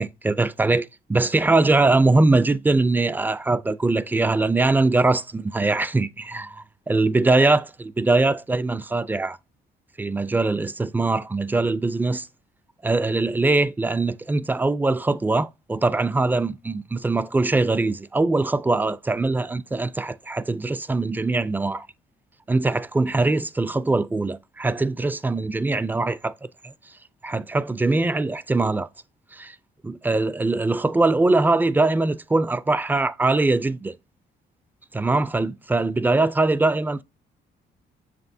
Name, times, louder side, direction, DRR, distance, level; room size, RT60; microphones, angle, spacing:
voice 1, 0.0-9.4 10.0-12.3 12.8-21.9 22.5-26.3 26.6-26.7 27.2-28.9 29.3-29.6 29.8-33.9 34.9-37.0, right 3 dB, 10° right, 0.4 m, -22 dB
7.1 x 5.8 x 2.7 m
cardioid pair, 90°, 20 cm